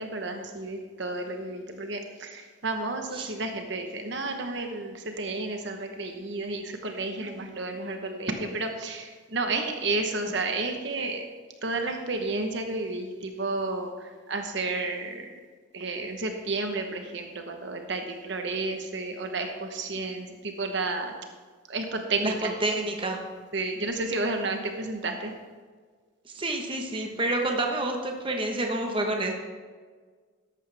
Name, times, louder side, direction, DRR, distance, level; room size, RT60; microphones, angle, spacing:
voice 1, 0.0-11.2 11.6-15.3 15.7-21.1 21.7-22.5 23.5-25.3, right 3 dB, 55° right, 4 dB, 1.1 m, -31 dB
voice 2, 22.6-23.2 26.3-29.3, right 2 dB, 25° right, 2 dB, 1.1 m, -28 dB
14.0 x 11.0 x 3.5 m, 1.5 s
head